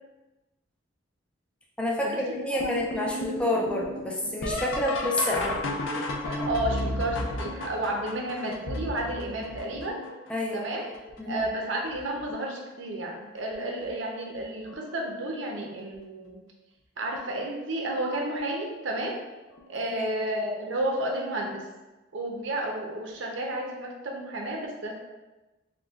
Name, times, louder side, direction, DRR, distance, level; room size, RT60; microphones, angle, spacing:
voice 1, 1.8-5.7 10.3-10.7 11.2-11.4 19.8-20.1, left 1 dB, 5° left, -2 dB, 0.4 m, -29 dB
sound 1, 2.6-10.3 10.9-11.5 11.9-12.6 13.8-13.9 14.7-15.0 17.1-17.3 19.6-19.7, left 1 dB, 90° left, 0.5 m, -33 dB
voice 2, 6.3-10.0 10.5-10.9 11.3-16.4 17.0-19.2 19.7-21.7 22.1-24.9, right 1 dB, 80° right, 0 dB, 0.7 m, -31 dB
5.9 x 2.2 x 2.4 m, 1.1 s
head